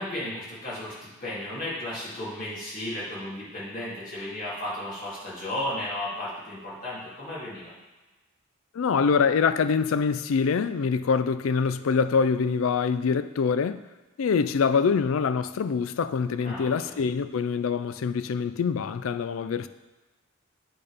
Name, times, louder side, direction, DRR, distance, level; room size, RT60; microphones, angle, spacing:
voice 1, 0.0-7.7 16.4-16.9, left 1 dB, 40° left, -8 dB, 2.8 m, -34 dB
voice 2, 8.7-13.8 14.2-19.7, left 5 dB, 70° left, 12 dB, 0.4 m, -25 dB
8.7 x 4.2 x 5.1 m, 1.2 s
head